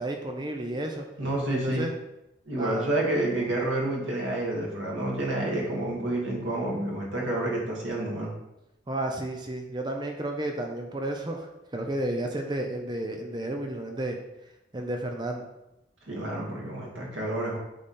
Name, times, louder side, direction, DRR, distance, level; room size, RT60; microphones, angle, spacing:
voice 1, 0.0-1.1 1.5-1.9 2.6-2.9 8.9-11.5 11.7-14.2 14.7-15.4, right 1 dB, 25° right, 3 dB, 0.6 m, -32 dB
voice 2, 1.2-1.8 2.5-8.3 16.1-17.6, right 1 dB, 85° right, -3 dB, 2.0 m, -29 dB
8.5 x 3.4 x 4.2 m, 0.90 s
head